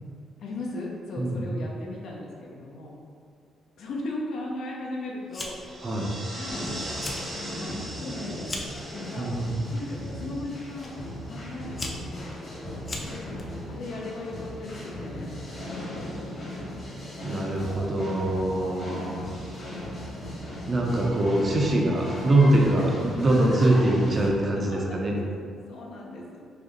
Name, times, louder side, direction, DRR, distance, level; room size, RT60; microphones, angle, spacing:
voice 1, 0.4-3.0 3.8-5.9 6.3-7.2 7.5-9.3 9.7-12.3 13.0-13.3 13.7-16.7 18.9-19.3 22.8-22.9 23.8-23.9 24.7-25.2 25.7-26.4, left 2 dB, 75° left, -2 dB, 0.6 m, -38 dB
voice 2, 1.2-1.5 5.8-6.1 9.2-9.7 17.2-19.2 20.7-25.1, right 1 dB, 40° right, -1 dB, 0.6 m, -23 dB
Fire, 5.3-5.8 6.1-6.6 6.9-7.3 7.7-8.8 9.6-9.9 10.8-10.9 11.5-13.4, left 2 dB, 35° left, 0.5 m, -37 dB
sound 1, 5.5-11.3, right 1 dB, 75° right, 1.3 m, -41 dB
sound 2, 6.5-24.3, left 1 dB, 55° left, 1.3 m, -37 dB
4.8 x 2.0 x 3.0 m, 2.3 s
cardioid pair, 90°, 0 cm